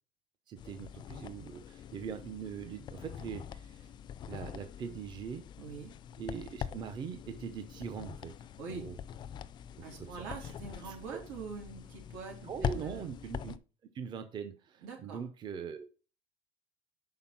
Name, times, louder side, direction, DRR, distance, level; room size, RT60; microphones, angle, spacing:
voice 1, 0.5-3.9 4.2-5.4 6.2-8.3 8.7-9.0 9.8-10.5 10.8-11.2 12.4-13.5 13.8-15.9, right 7 dB, 30° right, 9 dB, 0.6 m, -42 dB
sound 1, 0.6-13.6, left 8 dB, 30° left, 0.4 m, -43 dB
voice 2, 5.6-5.9 8.6-8.9 9.8-13.1 14.8-15.2, right 4 dB, 85° right, 1 dB, 3.3 m, -44 dB
5.7 x 4.2 x 5.9 m, 0.35 s
cardioid pair, 150°, 15 cm